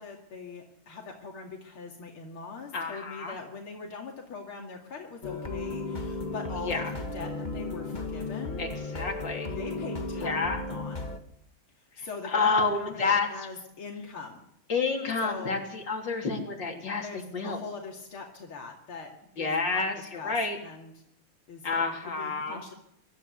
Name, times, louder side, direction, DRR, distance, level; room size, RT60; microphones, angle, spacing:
voice 1, 0.0-8.6 9.4-10.4 10.7-11.0 12.0-14.4 15.2-15.6 16.9-19.8 20.1-20.3 20.6-20.9 21.5-21.7 22.0-22.7, left 4 dB, 80° left, 0 dB, 3.1 m, -42 dB
voice 2, 2.7-3.4 6.6-6.9 8.6-9.5 10.2-10.6 12.0-13.3 14.7-17.6 19.4-20.6 21.6-22.6, left 4 dB, 55° left, 1 dB, 4.1 m, -29 dB
sound 1, 5.2-11.2, left 2 dB, 25° left, 1.4 m, -35 dB
23.0 x 13.5 x 8.3 m, 0.79 s
omnidirectional pair, 2.3 m